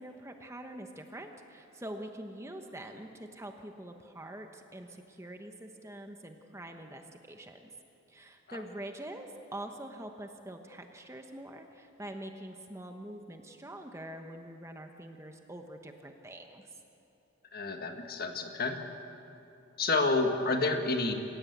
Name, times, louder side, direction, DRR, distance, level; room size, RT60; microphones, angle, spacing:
voice 1, 0.0-7.7 8.1-16.7, right 1 dB, 15° right, 4 dB, 1.1 m, -45 dB
voice 2, 17.5-18.8 19.8-21.1, left 3 dB, 45° left, 5 dB, 1.7 m, -29 dB
27.5 x 16.5 x 8.1 m, 2.8 s
head